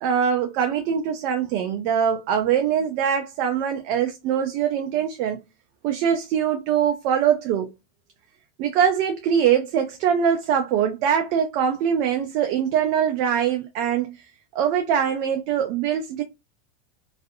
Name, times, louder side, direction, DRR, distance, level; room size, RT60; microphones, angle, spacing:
voice 1, 0.0-5.4 5.8-7.7 8.6-14.2 14.5-16.2, right 8 dB, 60° right, 0.4 m, -23 dB
2.5 x 2.4 x 2.4 m
hypercardioid pair, 110°, 0 cm